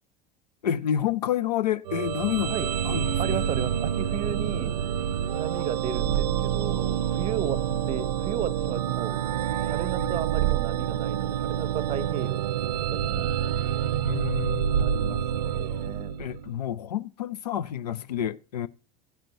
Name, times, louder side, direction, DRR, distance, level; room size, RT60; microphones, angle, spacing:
voice 1, 0.6-3.4 7.8-7.9 10.0-10.2 14.0-15.2 16.2-18.7, left 10 dB, 75° left, 0.5 m, -29 dB
sound 1, 1.9-16.6, right 10 dB, 70° right, 0.5 m, -27 dB
voice 2, 3.2-4.8 5.4-9.2 9.7-13.3 14.8-16.1, right 9 dB, 30° right, 0.7 m, -34 dB
15.0 x 8.7 x 3.0 m
figure-of-eight pair, 80°, 21 cm